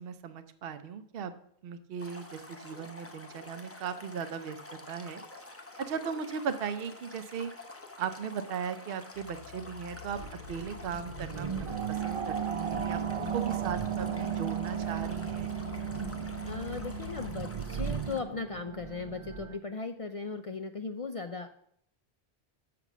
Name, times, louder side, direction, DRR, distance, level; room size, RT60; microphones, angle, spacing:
voice 1, 0.0-1.3 1.6-4.6 4.9-5.2 5.8-7.5 8.0-10.2 10.5-15.6, right 7 dB, 65° right, 10 dB, 0.8 m, -37 dB
Stream, 2.0-18.2, left 2 dB, 15° left, 0.8 m, -48 dB
sound 1, 9.2-17.4, left 13 dB, 80° left, 0.8 m, -46 dB
sound 2, 10.0-19.6, right 9 dB, 45° right, 0.5 m, -35 dB
voice 2, 16.4-21.5, left 4 dB, 50° left, 7 dB, 0.4 m, -37 dB
6.7 x 6.0 x 6.0 m, 0.68 s
omnidirectional pair, 1.1 m